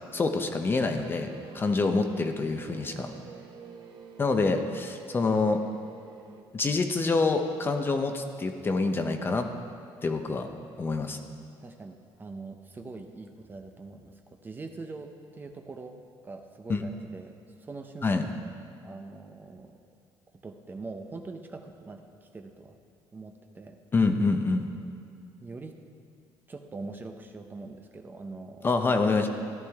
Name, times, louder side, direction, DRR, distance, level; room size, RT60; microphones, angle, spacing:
voice 1, 0.1-3.1 4.2-5.6 6.5-9.5 10.0-10.5 10.8-11.2 16.7-16.8 18.0-18.2 23.9-24.7 28.6-29.3, left 3 dB, 25° left, 6 dB, 0.8 m, -26 dB
sound 1, 1.0-6.4, right 6 dB, 60° right, 1.1 m, -48 dB
voice 2, 11.6-15.9 16.2-17.4 17.6-18.1 18.8-19.8 20.4-22.8 23.1-23.8 25.4-25.7 26.5-28.7, right 3 dB, 20° right, 5 dB, 0.7 m, -43 dB
14.0 x 11.5 x 3.6 m, 2.3 s
cardioid pair, 120°, 9 cm